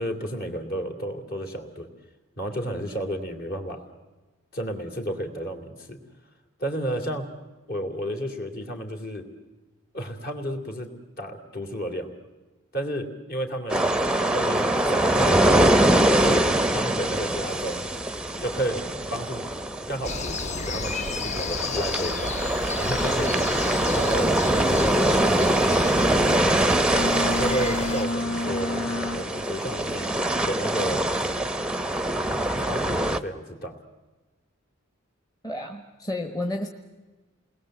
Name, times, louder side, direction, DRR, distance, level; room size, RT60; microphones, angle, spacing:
voice 1, 0.0-1.9 2.4-3.9 4.5-6.0 6.6-7.3 7.7-9.2 9.9-10.9 11.2-12.1 12.7-15.8 16.2-17.8 18.4-18.8 19.1-19.4 19.9-22.3 22.8-23.5 23.9-25.1 27.1-28.7 29.1-31.0 32.6-33.8, equal, 50° left, 4 dB, 2.8 m, -32 dB
sound 1, 13.7-33.2, right 1 dB, 5° right, 0.7 m, -24 dB
sound 2, 20.0-28.0, left 3 dB, 35° left, 0.7 m, -33 dB
Boat Water vehicle, 26.9-29.6, left 2 dB, 85° left, 0.8 m, -30 dB
voice 2, 35.4-36.7, left 1 dB, 20° left, 5 dB, 1.2 m, -31 dB
28.5 x 20.5 x 7.8 m, 1.2 s
head